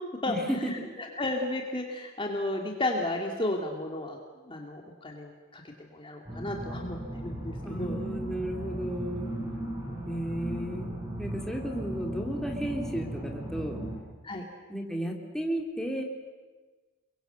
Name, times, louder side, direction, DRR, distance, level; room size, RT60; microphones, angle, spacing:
voice 1, 0.3-0.9 7.6-9.3 10.0-10.9 11.2-13.8 14.7-16.0, equal, 5° left, 0 dB, 3.5 m, -33 dB
voice 2, 1.0-4.2 4.4-8.0 9.9-10.0 14.2-14.4, left 2 dB, 25° left, 1 dB, 2.4 m, -33 dB
sound 1, 6.3-14.0, right 1 dB, 20° right, 6.9 m, -37 dB
29.0 x 23.0 x 8.1 m, 1.3 s
head